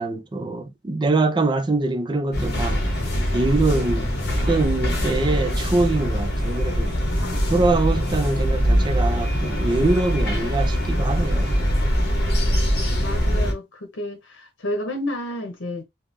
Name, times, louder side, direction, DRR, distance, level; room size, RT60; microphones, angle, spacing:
voice 1, 0.0-2.8 3.3-4.1 4.5-6.9 7.5-11.6, right 2 dB, 25° right, 0.4 m, -23 dB
sound 1, 2.3-13.5, equal, 55° left, 0.9 m, -22 dB
voice 2, 8.5-8.8 13.0-15.8, left 1 dB, 85° left, 0.8 m, -31 dB
3.5 x 2.0 x 2.5 m
head